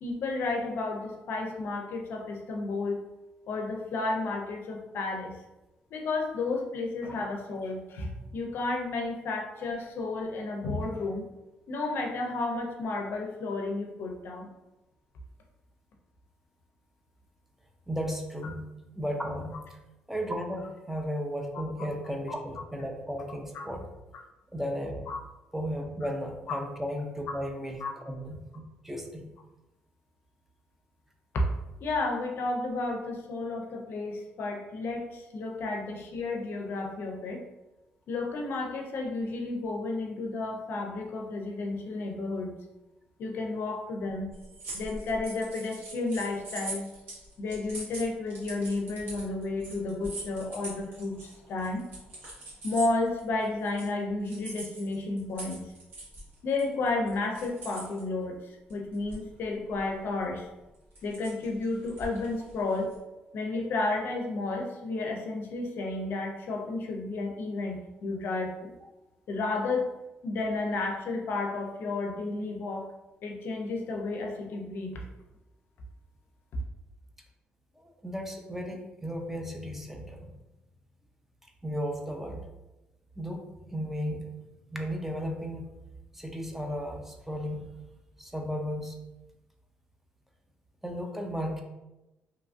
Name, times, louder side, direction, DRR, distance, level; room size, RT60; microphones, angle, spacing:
voice 1, 0.0-3.0 3.5-5.3 5.9-11.3 11.7-14.5 23.5-23.6 25.1-25.2 26.5-26.6 27.3-27.4 27.8-27.9 31.8-37.4 38.1-42.6 43.2-44.3 44.7-46.9 47.4-51.8 52.6-55.6 56.4-60.5 61.0-63.0 63.3-68.7 69.3-69.9 70.2-72.9 73.2-75.0, left 3 dB, 65° left, 2 dB, 0.4 m, -32 dB
voice 2, 17.9-18.6 18.9-19.8 20.1-23.8 24.5-25.0 25.5-29.2 77.8-80.3 81.6-82.4 83.2-84.3 84.7-85.7 86.1-87.6 88.2-89.0 90.8-91.6, equal, 5° right, 2 dB, 0.4 m, -35 dB
sound 1, 44.3-53.9 54.2-58.0 58.7-59.4 59.7-59.9 60.7-62.9, right 2 dB, 70° right, 1.3 m, -42 dB
2.8 x 2.3 x 2.4 m, 0.99 s
cardioid pair, 80°, 4 cm